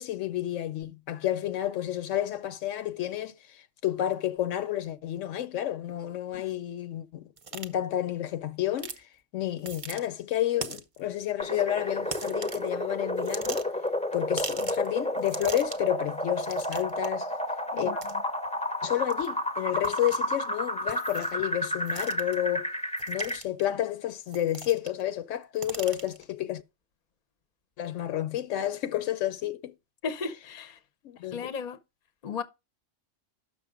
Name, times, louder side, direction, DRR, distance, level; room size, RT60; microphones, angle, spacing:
voice 1, 0.0-7.2 7.5-8.9 9.3-13.6 14.1-17.3 17.7-17.9 18.8-22.7 23.1-26.6 27.8-29.7 31.0-31.5, left 12 dB, 75° left, 1.0 m, -30 dB
sound 1, 7.4-7.7 8.8-9.0 9.6-10.0 10.6-11.0 12.1-12.7 13.2-13.9 14.4-14.9 15.2-15.9 16.4-17.1 18.0-18.1 19.1-19.3 19.8-20.2 20.9-21.4 21.9-22.4 23.0-23.6 24.3-25.0 25.3-26.2, right 5 dB, 35° right, 0.5 m, -39 dB
sound 2, 11.4-23.4, left 1 dB, 5° left, 0.6 m, -31 dB
voice 2, 30.0-30.8 31.3-31.8 32.2-32.4, left 5 dB, 40° left, 0.7 m, -35 dB
6.3 x 6.2 x 4.9 m
omnidirectional pair, 1.3 m